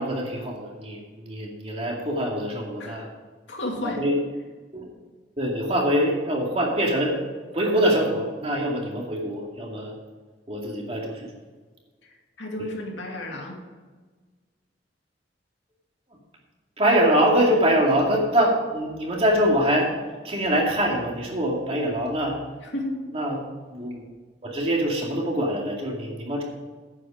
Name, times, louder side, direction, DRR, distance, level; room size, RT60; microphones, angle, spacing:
voice 1, 0.0-3.1 3.8-4.2 4.7-4.9 5.4-7.2 7.5-9.9 10.5-11.3 16.8-19.9 20.2-22.4 23.1-23.4 23.7-24.0 24.4-26.4, equal, 30° right, -1 dB, 2.3 m, -24 dB
voice 2, 3.5-4.0 12.0-13.6 22.6-23.0, left 1 dB, 80° left, 0 dB, 2.4 m, -32 dB
9.7 x 8.6 x 4.9 m, 1.4 s
head